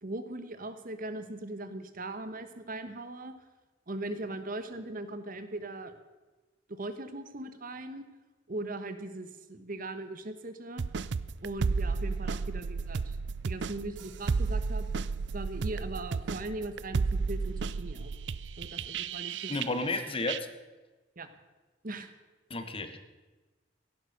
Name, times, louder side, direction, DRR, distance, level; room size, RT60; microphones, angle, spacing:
voice 1, 0.0-3.3 3.9-5.9 6.7-8.0 8.5-10.8 11.4-13.2 13.4-14.9 15.3-18.1 18.6-19.7 21.2-21.3 21.8-22.1, right 2 dB, 50° right, 10 dB, 1.2 m, -39 dB
sound 1, 10.8-20.0 20.3-20.4, right 4 dB, 70° right, 0.5 m, -33 dB
voice 2, 19.5-20.5 22.5-23.0, left 2 dB, 30° left, 9 dB, 1.2 m, -32 dB
16.5 x 11.5 x 6.6 m, 1.2 s
head